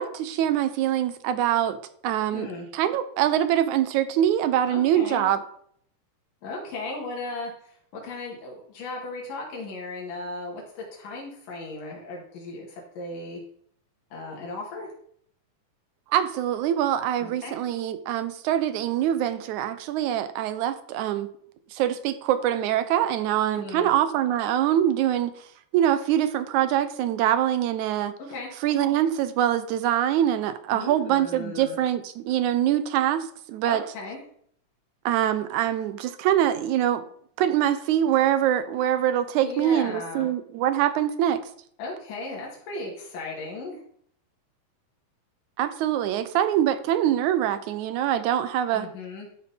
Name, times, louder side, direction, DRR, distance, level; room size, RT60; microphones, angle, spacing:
voice 1, 0.0-1.8 2.0-5.4 16.1-21.3 21.7-25.3 25.7-28.1 28.6-33.8 35.1-37.0 37.4-41.4 45.6-48.9, right 11 dB, 75° right, 11 dB, 2.0 m, -24 dB
voice 2, 2.3-2.7 4.6-5.2 6.4-7.5 7.9-13.4 14.1-14.9 17.2-17.6 23.5-23.9 28.2-28.5 30.7-31.8 33.6-34.2 39.4-40.3 41.8-43.8 48.7-49.3, left 2 dB, 85° left, -2 dB, 3.7 m, -36 dB
13.0 x 4.4 x 5.2 m, 0.63 s
omnidirectional pair, 3.8 m